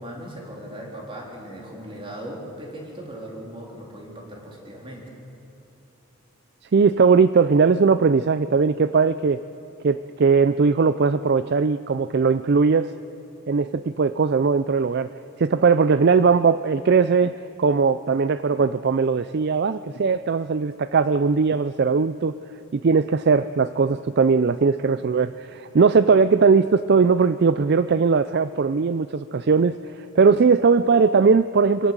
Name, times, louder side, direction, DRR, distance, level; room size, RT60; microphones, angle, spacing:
voice 1, 0.0-5.1, right 1 dB, 25° right, -1 dB, 3.8 m, -38 dB
voice 2, 6.7-9.4 9.8-12.9 13.5-15.1 15.4-17.3 17.6-22.3 22.8-31.9, right 5 dB, 50° right, 13 dB, 0.4 m, -19 dB
25.5 x 17.0 x 7.5 m, 2.9 s
head